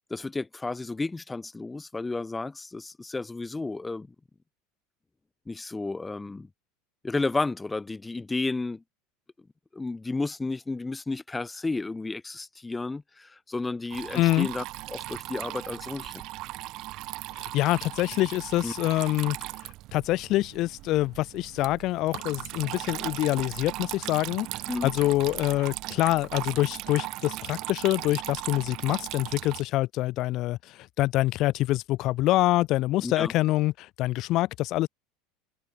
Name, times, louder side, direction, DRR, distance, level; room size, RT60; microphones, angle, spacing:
voice 1, 0.1-4.1 5.5-6.5 7.0-8.8 9.7-16.2 18.6-18.7 24.7-24.9 33.0-33.3, left 3 dB, 10° left, 5.6 m, -32 dB
Water tap faucet / Trickle dribble, 13.9-29.6, right 18 dB, 50° right, 5.9 m, -38 dB
voice 2, 14.1-14.5 17.4-19.4 19.6-34.9, left 17 dB, 50° left, 4.5 m, -26 dB
supercardioid pair, 130°, 0 cm